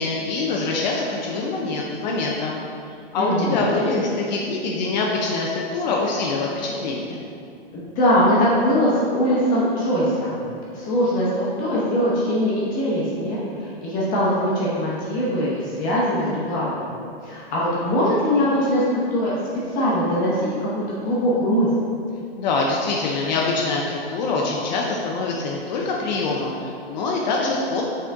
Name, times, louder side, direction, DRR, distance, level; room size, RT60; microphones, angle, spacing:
voice 1, 0.0-2.6 3.1-7.2 22.4-27.8, left 3 dB, 45° left, -2 dB, 0.7 m, -24 dB
voice 2, 3.1-3.9 7.7-10.3 10.7-16.9 17.2-19.3 19.7-21.7, equal, 25° left, -8 dB, 1.2 m, -22 dB
6.2 x 4.3 x 3.5 m, 2.4 s
hypercardioid pair, 145°, 31 cm